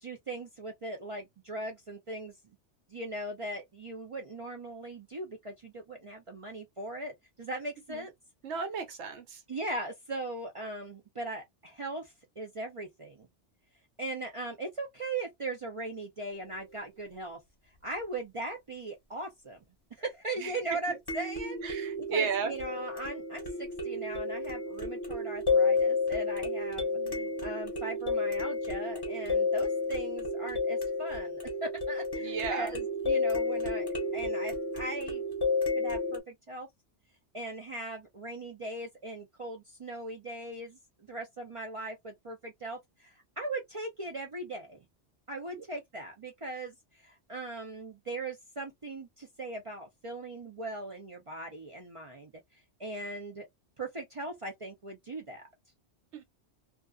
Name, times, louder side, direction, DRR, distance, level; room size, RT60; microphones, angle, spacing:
voice 1, 0.0-2.3 2.9-8.1 9.5-13.3 14.0-17.4 17.8-19.6 19.9-35.2 35.8-36.7 37.3-44.8 45.3-52.3 52.8-53.5 53.8-55.5, right 2 dB, 50° right, 0.4 m, -39 dB
voice 2, 8.4-9.4 20.4-21.0 21.6-22.5 27.0-27.5 32.2-32.7 45.5-45.6 56.1-56.2, right 5 dB, 75° right, 0.9 m, -35 dB
sound 1, 16.4-16.5 21.1-36.2, left 3 dB, 25° left, 0.7 m, -31 dB
2.3 x 2.3 x 2.2 m
omnidirectional pair, 1.2 m